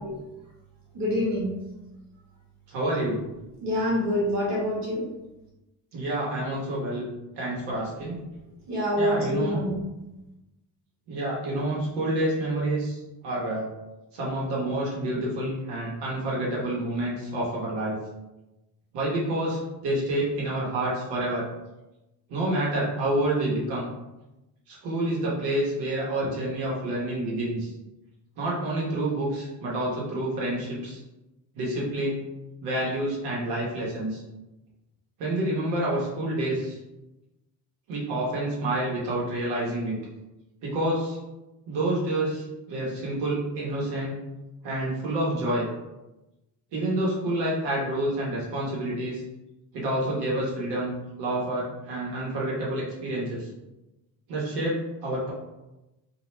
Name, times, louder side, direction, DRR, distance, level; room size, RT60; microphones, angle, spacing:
voice 1, 0.9-1.5 3.6-5.1 8.7-9.8, equal, 45° right, -5 dB, 1.0 m, -26 dB
voice 2, 2.7-3.2 5.9-7.1 7.3-8.2 9.0-9.6 11.1-13.7 14.1-18.0 18.9-21.4 22.3-23.9 24.7-27.7 28.4-31.0 31.5-32.3 32.6-34.2 35.2-36.8 37.9-40.0 40.6-41.2 41.7-44.2 44.6-45.7 46.7-49.2 49.7-53.5 54.3-55.3, right 1 dB, 80° right, -5 dB, 1.0 m, -28 dB
2.4 x 2.1 x 3.1 m, 0.99 s
cardioid pair, 145°, 40 cm